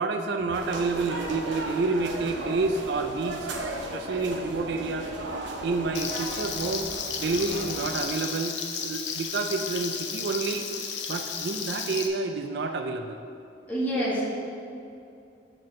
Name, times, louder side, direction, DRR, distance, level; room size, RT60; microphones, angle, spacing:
voice 1, 0.0-3.5 3.9-5.1 5.4-6.9 7.2-8.6 8.8-10.7 11.1-13.2, right 3 dB, 60° right, 6 dB, 0.4 m, -29 dB
sound 1, 0.5-8.0, right 1 dB, 80° right, 0.9 m, -36 dB
Frying (food), 5.9-12.1, left 6 dB, 70° left, 0.6 m, -33 dB
voice 2, 13.7-14.2, equal, 10° left, -8 dB, 1.5 m, -29 dB
6.2 x 4.3 x 6.3 m, 2.6 s
head